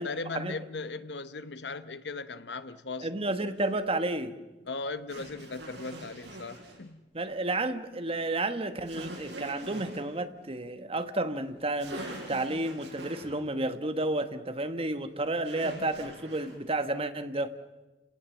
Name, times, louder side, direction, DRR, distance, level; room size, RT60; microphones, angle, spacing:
voice 1, 0.0-3.2 4.7-7.0, left 3 dB, 70° left, 1.1 m, -38 dB
voice 2, 3.0-4.4 7.1-17.5, right 2 dB, 35° right, 1.3 m, -31 dB
sound 1, 3.6-3.7 5.1-6.8 8.8-10.0 11.5-11.6 11.8-13.3 15.4-16.6, right 1 dB, 80° right, 7.3 m, -43 dB
30.0 x 18.0 x 7.3 m
head